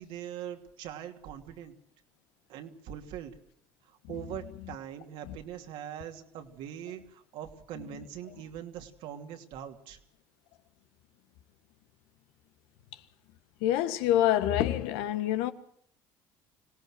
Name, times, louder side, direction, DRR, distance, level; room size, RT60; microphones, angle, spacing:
voice 1, 0.0-1.7 2.5-3.3 3.8-10.0, right 10 dB, 75° right, 2.9 m, -42 dB
voice 2, 13.6-15.5, left 12 dB, 85° left, 1.5 m, -26 dB
25.5 x 18.0 x 7.8 m
supercardioid pair, 85°, 9 cm